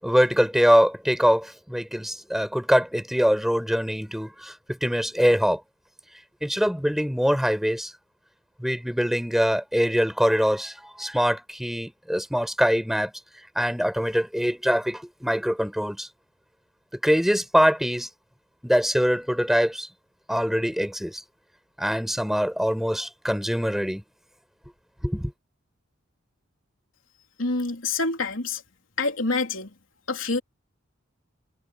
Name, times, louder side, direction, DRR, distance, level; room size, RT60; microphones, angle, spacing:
voice 1, 0.0-5.6 6.4-7.9 8.6-13.1 13.6-16.1 16.9-18.1 18.6-19.9 20.3-21.2 21.8-24.0 25.0-25.3, equal, ahead, 7.5 m, -23 dB
voice 2, 27.4-28.6 29.0-29.7 30.1-30.4, left 3 dB, 90° left, 3.3 m, -26 dB
head